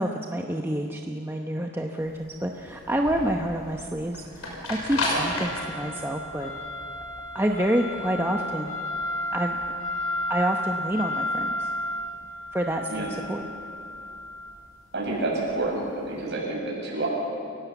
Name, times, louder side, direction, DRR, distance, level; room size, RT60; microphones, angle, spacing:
voice 1, 0.0-6.5 7.3-8.8 9.3-9.6 10.3-11.7 12.5-13.4, right 1 dB, 10° right, 2 dB, 0.8 m, -28 dB
sound 1, 2.0-16.1, left 1 dB, 90° left, 5.9 m, -32 dB
voice 2, 14.9-17.1, right 2 dB, 50° right, -3 dB, 7.2 m, -29 dB
30.0 x 17.0 x 7.1 m, 2.4 s
head